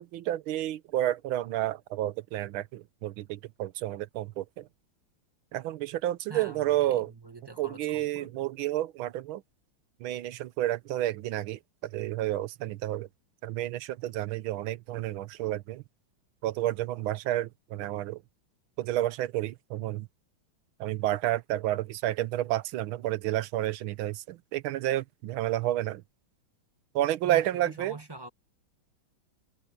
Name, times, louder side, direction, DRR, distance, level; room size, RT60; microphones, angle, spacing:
voice 1, 0.0-4.6 5.5-7.1 7.6-9.4 10.0-11.6 11.9-13.1 13.4-15.8 16.4-18.2 18.8-20.1 20.8-26.0 26.9-27.9, right 14 dB, 85° right, 1.6 m, -30 dB
voice 2, 6.3-8.3 27.2-28.3, right 2 dB, 15° right, 1.0 m, -44 dB
omnidirectional pair, 2.2 m